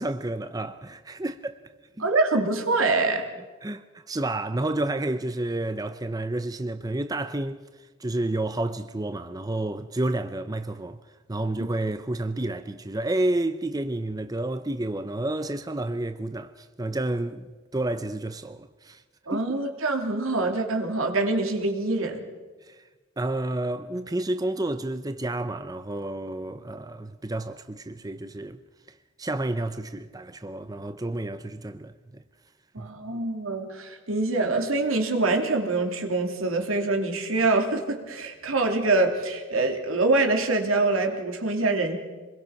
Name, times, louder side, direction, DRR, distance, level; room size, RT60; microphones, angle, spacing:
voice 1, 0.0-1.5 2.0-2.1 3.6-7.6 8.0-11.0 11.3-19.0 19.3-19.4 22.6-22.8 23.2-28.6 29.2-32.2 32.8-32.9, right 2 dB, 20° right, 0.6 m, -30 dB
voice 2, 2.0-3.3 19.3-22.2 32.7-42.0, right 3 dB, 80° right, 3.1 m, -25 dB
26.5 x 21.5 x 5.9 m
head